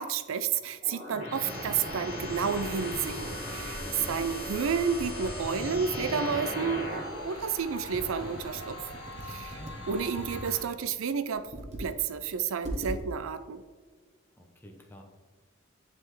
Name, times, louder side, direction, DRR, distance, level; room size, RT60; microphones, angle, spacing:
voice 1, 0.0-3.8 4.1-8.9 9.2-9.6 9.9-11.5 11.8-13.6, right 6 dB, 75° right, 11 dB, 0.4 m, -31 dB
sound 1, 0.8-7.3, left 1 dB, 25° left, 1.6 m, -38 dB
sound 2, 1.4-10.6, equal, 50° left, 1.7 m, -42 dB
voice 2, 3.8-4.2 9.5-9.8 14.4-15.0, equal, 10° left, 1 dB, 0.6 m, -48 dB
Computer keyboard, 7.9-10.7 11.3-12.0 12.3-12.4 12.6-13.0, right 1 dB, 30° right, 0.8 m, -40 dB
9.4 x 3.3 x 3.1 m, 1.5 s
head